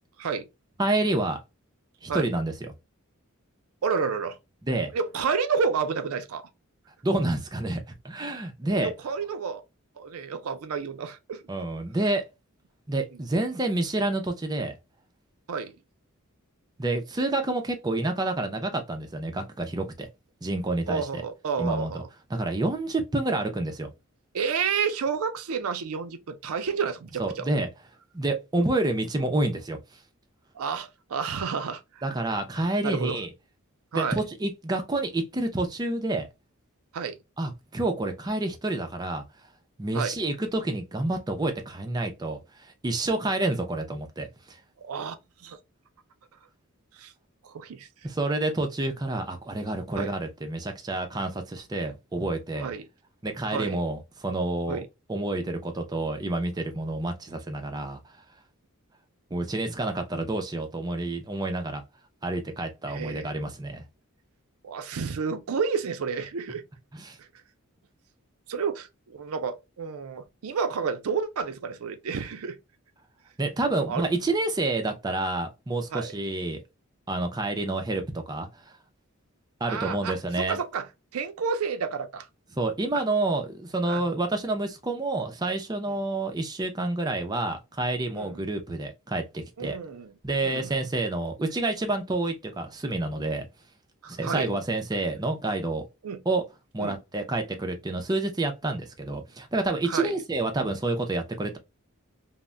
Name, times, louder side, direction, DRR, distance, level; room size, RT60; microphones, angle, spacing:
voice 1, 0.8-1.4 2.0-2.7 4.6-4.9 7.0-8.9 11.5-12.3 12.9-14.8 16.8-20.1 20.4-21.2 21.6-22.0 22.3-23.9 27.2-27.7 28.1-29.8 32.0-33.3 33.9-36.3 37.4-39.2 39.8-42.4 42.8-44.6 48.0-52.7 53.2-54.8 55.1-58.0 59.3-61.8 62.2-63.8 66.9-67.2 73.4-76.6 77.1-78.5 79.6-80.6 82.6-89.8 90.2-93.5 94.1-95.8 96.3-96.4 96.7-101.6, right 2 dB, 20° right, 0.4 m, -28 dB
voice 2, 3.8-4.4 4.9-6.4 8.6-9.6 10.0-11.4 13.1-13.2 15.5-15.7 20.9-22.1 24.3-27.5 28.6-28.7 30.5-32.1 32.8-33.2 33.9-34.2 36.9-37.2 39.9-40.2 44.8-45.1 45.4-45.6 47.0-47.1 47.4-47.9 50.0-50.1 52.6-52.9 53.5-53.8 54.7-54.9 62.9-63.3 64.6-66.6 68.5-72.6 73.9-74.1 75.9-76.1 79.7-80.9 81.1-82.3 82.9-83.0 83.9-84.0 88.1-88.4 89.6-90.1 90.4-90.7 94.0-94.5 96.0-96.2 96.8-97.0 99.8-100.2, right 5 dB, 80° right, 0.4 m, -30 dB
2.1 x 2.1 x 3.6 m
head